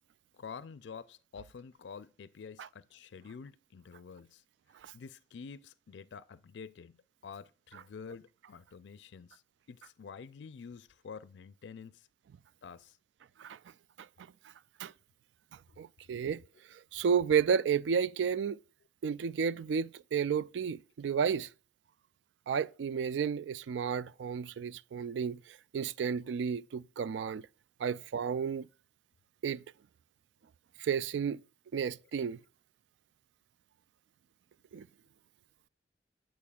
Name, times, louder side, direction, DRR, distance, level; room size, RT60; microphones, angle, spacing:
voice 1, 0.3-4.4 4.9-7.0 7.2-9.4 9.7-12.1 12.6-13.0, left 6 dB, 80° left, 0.4 m, -48 dB
voice 2, 15.8-16.4 16.9-18.6 19.0-21.5 22.5-25.4 25.7-27.4 27.8-28.7 29.4-29.6 30.8-31.4 31.7-32.4 34.7-34.9, right 7 dB, 80° right, 0.3 m, -32 dB
9.2 x 8.4 x 2.3 m
head